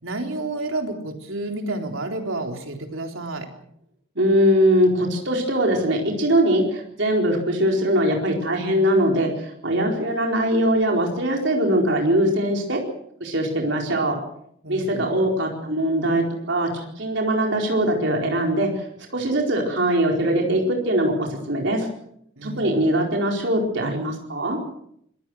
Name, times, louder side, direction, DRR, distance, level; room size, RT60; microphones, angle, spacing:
voice 1, 0.0-3.5 14.6-15.1 22.4-22.8, right 2 dB, 80° right, 3 dB, 3.9 m, -30 dB
voice 2, 4.2-12.8 13.2-14.2 14.7-18.8 19.1-21.9 22.4-24.6, right 1 dB, 60° right, 1 dB, 4.5 m, -21 dB
26.0 x 20.5 x 6.4 m, 0.71 s
head